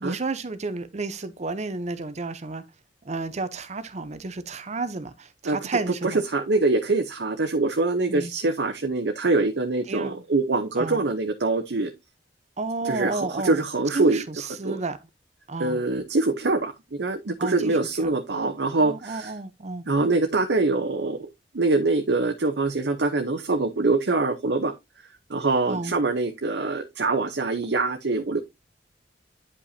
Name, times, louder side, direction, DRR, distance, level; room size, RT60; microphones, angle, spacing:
voice 1, 0.0-2.6 3.0-6.2 8.1-8.3 9.9-10.2 10.8-11.0 12.6-13.6 13.9-15.0 15.5-15.8 17.4-18.1 18.8-19.8 25.7-26.0, right 3 dB, 40° right, 0.7 m, -31 dB
voice 2, 6.0-11.9 12.8-14.2 14.6-14.8 15.6-19.3 19.9-21.2 21.5-24.7 25.3-28.4, right 3 dB, 70° right, 0.8 m, -24 dB
9.9 x 5.3 x 2.7 m
head